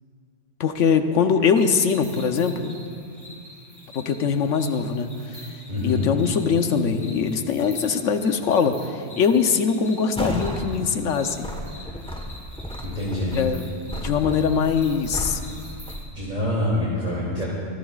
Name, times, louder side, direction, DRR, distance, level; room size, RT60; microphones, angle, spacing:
voice 1, 0.6-2.7 3.9-5.4 5.8-11.5 13.3-13.6 14.0-15.4 17.3-17.4, left 6 dB, 85° left, 7 dB, 1.2 m, -22 dB
sound 1, 1.5-16.0, left 1 dB, 15° right, 3.0 m, -46 dB
voice 2, 5.7-6.1 12.8-13.3 16.1-17.5, left 1 dB, 35° right, -7 dB, 2.7 m, -26 dB
sound 2, 10.2-10.7 11.1-16.0, equal, 5° left, 1.1 m, -33 dB
27.0 x 16.0 x 2.4 m, 2.3 s
omnidirectional pair, 1.3 m